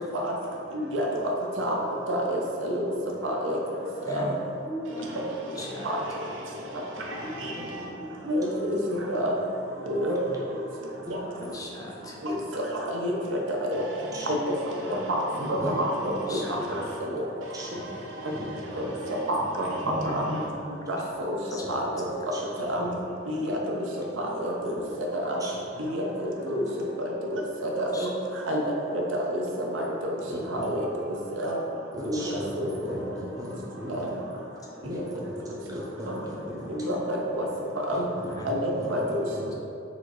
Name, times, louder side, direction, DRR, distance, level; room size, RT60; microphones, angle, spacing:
voice 1, 0.7-1.1 1.6-1.8 2.1-2.9 3.2-3.6 4.0-4.3 5.8-6.0 7.4-7.5 8.3-9.3 9.9-10.2 11.1-11.2 12.2-13.1 13.6-13.9 14.3-14.5 14.8-16.8 17.1-17.2 18.2-18.3 18.8-19.7 20.0-20.4 20.9-21.0 21.2-21.4 21.7-22.0 22.7-22.9 23.3-23.6 24.3-24.7 25.1-25.4 25.9-26.6 27.0-28.1 28.5-29.4 29.7-30.1 30.5-30.9 31.3-31.6 32.0-32.7 33.9-34.1 36.1-36.2 36.8-37.5 37.9-38.0 38.5-39.2, equal, 70° right, -1 dB, 0.7 m, -28 dB
voice 2, 4.1-5.2 5.6-6.0 7.0-7.4 7.8-8.1 9.4-9.5 9.8-9.9 11.2-12.2 14.9-15.1 16.3-16.6 18.9-19.3 19.8-20.2 20.6-20.7 21.5-21.7 21.9-22.0 23.4-23.5 27.8-28.1 34.5-34.6 37.7-37.8 38.4-38.5, equal, 20° left, -2 dB, 0.4 m, -40 dB
voice 3, 7.6-7.9 11.1-11.5 14.1-14.3 15.6-16.8 17.5-17.8 18.3-18.4 18.7-18.8 19.3-19.5 19.8-20.5 22.0-22.9 25.4-25.6 30.3-30.7 31.9-34.3 34.8-35.4 35.7-37.0 37.3-37.4 37.9-38.4 38.7-39.5, equal, 20° right, -5 dB, 0.8 m, -38 dB
4.0 x 2.6 x 4.7 m, 2.7 s
head